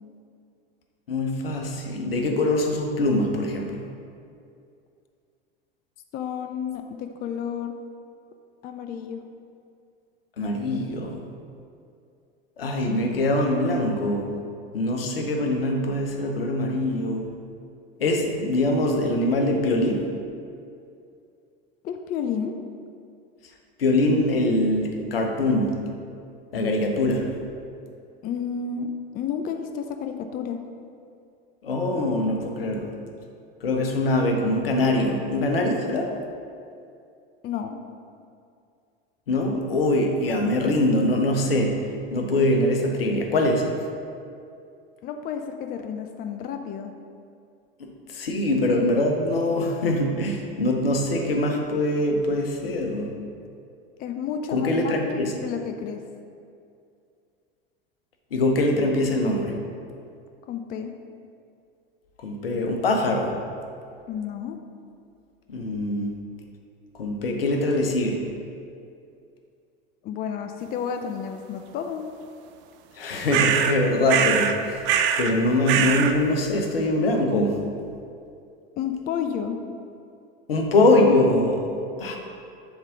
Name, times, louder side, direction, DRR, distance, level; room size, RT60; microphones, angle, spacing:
voice 1, 1.1-3.9 10.4-11.2 12.6-14.3 14.7-17.3 18.0-20.1 23.8-25.8 26.5-27.3 31.6-32.9 33.6-36.2 39.3-43.7 47.8-53.1 54.5-55.3 58.3-59.6 62.2-63.4 65.5-66.1 67.0-68.2 72.9-74.8 75.2-77.6 80.5-81.7 82.0-82.2, left 1 dB, 80° left, 3 dB, 0.9 m, -23 dB
voice 2, 6.1-7.7 8.6-9.2 21.8-22.6 28.2-30.6 37.4-37.8 45.0-46.9 54.0-56.0 60.5-60.9 64.1-64.6 70.0-72.0 78.8-79.6, left 7 dB, 30° left, 6 dB, 0.5 m, -31 dB
sound 1, 73.3-73.8 74.1-74.6 74.8-75.3 75.7-76.1, right 8 dB, 40° right, 0.5 m, -22 dB
7.1 x 3.6 x 5.1 m, 2.4 s
figure-of-eight pair, 80°, 29 cm